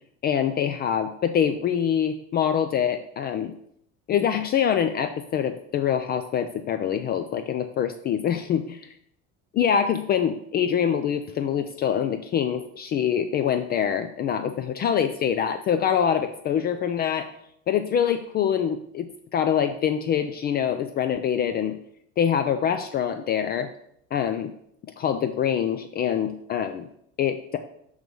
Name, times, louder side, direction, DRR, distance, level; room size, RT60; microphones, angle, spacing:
voice 1, 0.2-3.5 4.1-8.8 9.6-17.3 17.7-21.8 22.2-23.7 24.1-24.5 25.0-26.9 27.2-27.6, left 8 dB, 35° left, 8 dB, 0.4 m, -25 dB
7.7 x 3.2 x 5.2 m, 0.71 s
cardioid pair, 135°, 30 cm